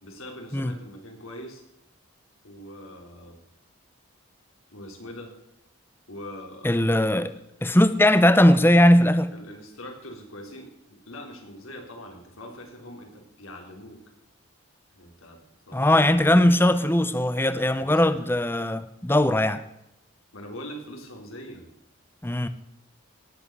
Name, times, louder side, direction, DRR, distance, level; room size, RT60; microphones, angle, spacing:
voice 1, 0.0-1.6 2.4-3.4 4.7-5.3 6.1-6.9 7.3-7.7 8.2-8.3 9.3-14.0 14.9-15.4 15.7-16.7 17.8-18.1 20.3-21.6, equal, 80° left, 2 dB, 3.9 m, -42 dB
voice 2, 6.6-7.3 7.6-9.3 15.7-19.6 22.2-22.5, left 1 dB, 10° left, 12 dB, 0.6 m, -19 dB
18.5 x 7.6 x 8.1 m, 0.82 s
head